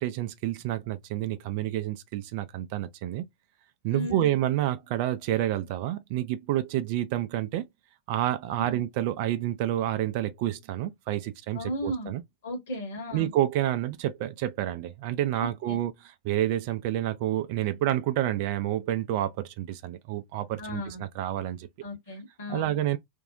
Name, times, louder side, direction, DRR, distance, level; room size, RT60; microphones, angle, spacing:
voice 1, 0.0-3.3 3.8-7.7 8.1-12.2 13.1-21.7 22.5-23.0, right 13 dB, 45° right, 0.3 m, -29 dB
voice 2, 3.9-4.3 8.6-8.8 11.5-12.1 12.4-13.3 15.4-15.8 20.6-21.0 21.8-22.7, equal, 60° left, 1.1 m, -35 dB
2.6 x 2.0 x 2.4 m
figure-of-eight pair, 90°, 0 cm